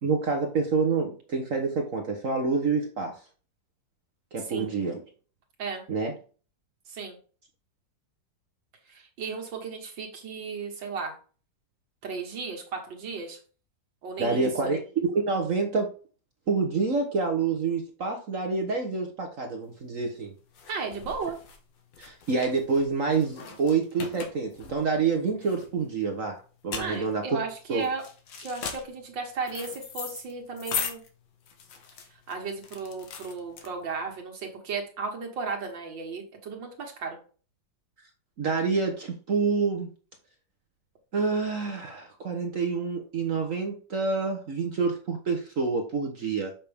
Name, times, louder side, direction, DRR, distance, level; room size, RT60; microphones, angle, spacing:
voice 1, 0.0-3.2 4.3-5.0 5.9-6.1 14.2-15.9 16.5-20.3 22.0-27.4 27.7-27.9 38.4-39.9 41.1-46.5, right 4 dB, 50° right, 3 dB, 1.3 m, -27 dB
voice 2, 6.9-7.2 8.9-11.2 12.0-13.4 14.0-14.5 20.7-21.4 26.8-28.0 28.4-31.0 32.3-37.2, right 4 dB, 75° right, 1 dB, 2.2 m, -35 dB
sound 1, 19.7-34.1, left 6 dB, 80° left, 1.8 m, -39 dB
7.2 x 5.9 x 3.5 m, 0.38 s
omnidirectional pair, 2.0 m